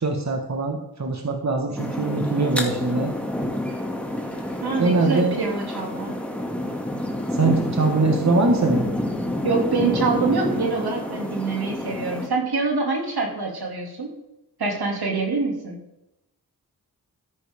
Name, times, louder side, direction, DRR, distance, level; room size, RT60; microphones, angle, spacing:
voice 1, 0.0-3.1 4.8-5.4 7.3-8.8, right 3 dB, 45° right, 3 dB, 1.6 m, -22 dB
sound 1, 1.8-12.3, left 1 dB, 5° left, 2.4 m, -28 dB
voice 2, 4.6-6.1 9.4-14.2 14.6-15.8, right 4 dB, 80° right, 1 dB, 2.7 m, -25 dB
13.5 x 9.9 x 3.7 m, 0.88 s
cardioid pair, 50°, 37 cm